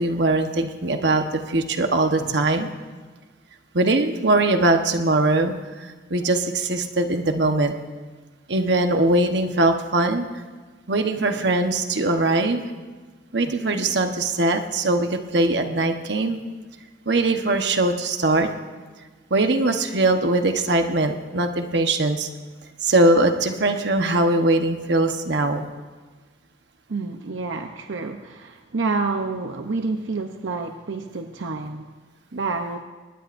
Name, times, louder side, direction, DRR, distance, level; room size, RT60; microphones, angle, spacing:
voice 1, 0.0-2.7 3.7-7.7 8.5-10.3 10.9-12.6 13.3-16.4 17.1-18.5 19.3-22.3 22.8-25.7, right 2 dB, 65° right, 5 dB, 1.2 m, -21 dB
voice 2, 26.9-31.9 32.3-32.8, right 3 dB, 80° right, 5 dB, 0.7 m, -28 dB
23.5 x 19.5 x 2.6 m, 1.4 s
head